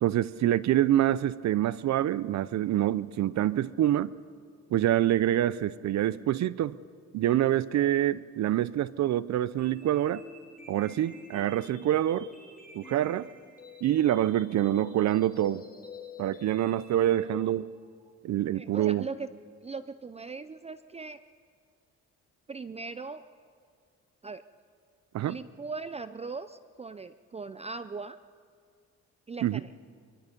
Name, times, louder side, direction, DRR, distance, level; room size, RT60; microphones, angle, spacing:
voice 1, 0.0-4.1 4.7-6.8 7.1-10.2 10.7-12.3 12.7-13.3 13.8-15.6 16.2-17.7 18.2-19.1 25.1-25.4 29.4-29.6, right 12 dB, 65° right, 18 dB, 0.6 m, -26 dB
sound 1, 9.6-17.6, left 4 dB, 25° left, 2.7 m, -49 dB
voice 2, 18.5-19.3 19.6-21.2 22.5-23.2 24.2-24.4 25.3-28.2 29.3-29.7, right 4 dB, 20° right, 13 dB, 0.5 m, -39 dB
24.5 x 21.5 x 5.3 m, 2.2 s
cardioid pair, 90°, 30 cm